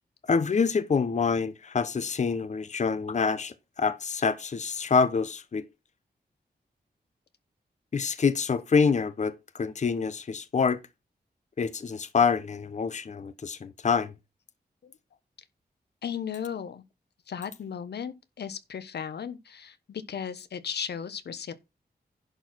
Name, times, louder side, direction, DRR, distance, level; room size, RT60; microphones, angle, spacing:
voice 1, 0.3-5.6 7.9-10.8 11.6-14.1, left 5 dB, 45° left, 0.8 m, -26 dB
voice 2, 16.0-16.8 17.3-21.5, left 7 dB, 90° left, 1.2 m, -36 dB
11.0 x 4.6 x 6.1 m
wide cardioid pair, 115°, 17 cm